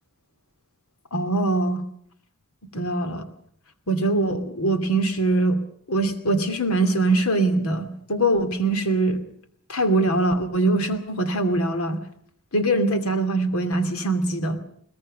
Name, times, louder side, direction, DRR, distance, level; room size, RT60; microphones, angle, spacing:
voice 1, 1.1-1.8 2.7-3.3 3.9-5.6 5.9-9.2 9.7-12.0 12.5-14.6, right 2 dB, 80° left, 8 dB, 2.6 m, -22 dB
22.5 x 19.5 x 6.5 m, 0.64 s
head